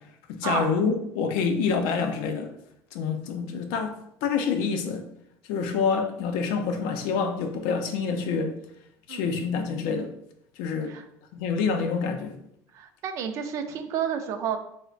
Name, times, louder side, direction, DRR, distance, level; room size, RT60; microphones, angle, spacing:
voice 1, 0.3-2.5 2.9-3.9 4.2-5.0 5.5-8.5 9.1-10.1 10.6-10.9 11.3-12.3, left 5 dB, 75° left, 6 dB, 0.5 m, -27 dB
voice 2, 12.7-14.6, right 8 dB, 45° right, 7 dB, 0.3 m, -30 dB
3.2 x 2.0 x 3.8 m, 0.73 s
cardioid pair, 175°, 8 cm